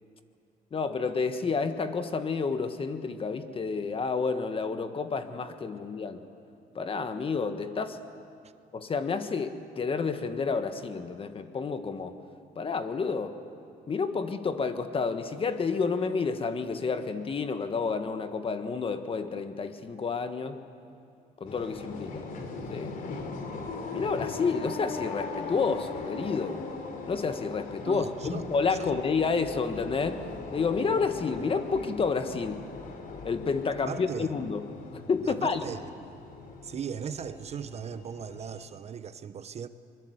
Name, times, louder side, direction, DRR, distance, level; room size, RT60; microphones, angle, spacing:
voice 1, 0.7-6.2 6.7-8.0 8.7-12.2 12.5-13.4 13.9-20.6 21.4-22.3 22.7-23.0 23.9-26.6 27.1-30.2 30.5-32.6 33.2-34.7 34.9-35.6, left 5 dB, 35° left, 1.5 m, -30 dB
sound 1, 21.5-38.7, left 3 dB, 55° left, 3.1 m, -40 dB
voice 2, 27.9-28.4 28.8-29.0 33.8-34.3 35.3-35.8 36.6-39.7, right 7 dB, 40° right, 0.8 m, -38 dB
24.0 x 22.0 x 8.1 m
cardioid pair, 110°, 17 cm